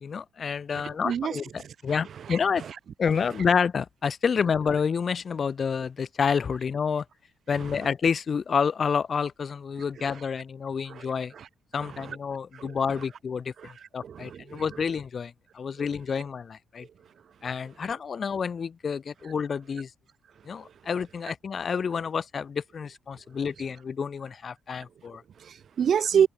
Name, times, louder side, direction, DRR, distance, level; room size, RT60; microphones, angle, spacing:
voice 1, 0.0-1.4 1.8-2.7 3.0-7.0 7.5-11.3 11.7-16.9 17.4-19.9 20.5-25.2, left 6 dB, 45° left, 0.3 m, -29 dB
voice 2, 0.7-1.7 2.0-2.8 7.6-7.8 10.0-10.2 10.9-11.5 11.8-12.2 12.5-13.0 13.6-14.6 20.6-20.7 25.4-26.3, right 8 dB, 55° right, 0.6 m, -30 dB
cardioid pair, 90°, 0 cm